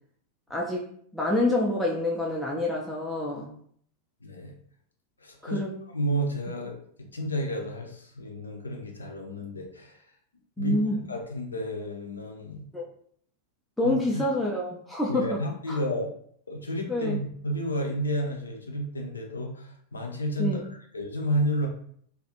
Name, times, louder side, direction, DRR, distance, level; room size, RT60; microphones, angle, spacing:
voice 1, 0.5-0.9 1.1-3.5 5.4-5.8 10.6-11.0 12.7-12.8 13.8-15.4 15.7-15.8 16.9-17.2 20.4-20.6, left 1 dB, ahead, -5 dB, 0.4 m, -27 dB
voice 2, 4.2-4.5 5.2-5.6 5.9-10.0 10.6-10.8 11.1-12.7 13.8-14.2 15.1-16.1 16.5-21.7, equal, 75° left, 1 dB, 0.4 m, -31 dB
2.3 x 2.0 x 2.8 m, 0.62 s
figure-of-eight pair, 90°, 0 cm